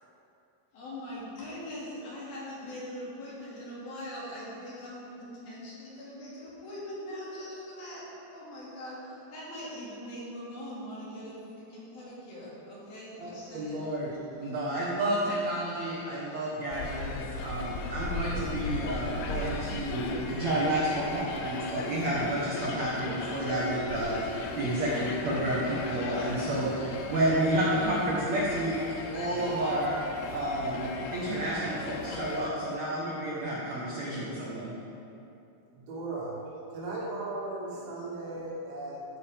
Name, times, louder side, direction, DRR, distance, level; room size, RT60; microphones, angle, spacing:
voice 1, 0.7-13.8 37.7-37.8, left 1 dB, 55° left, -7 dB, 3.9 m, -42 dB
voice 2, 13.2-14.1 14.4-17.1 17.4-28.8 29.1-34.7, right 1 dB, 70° right, -6 dB, 1.6 m, -30 dB
sound 1, 16.7-32.5, left 3 dB, 75° left, 2.5 m, -37 dB
voice 3, 35.7-39.1, right 2 dB, 85° right, -6 dB, 4.6 m, -37 dB
13.0 x 9.9 x 3.5 m, 2.8 s
omnidirectional pair, 5.2 m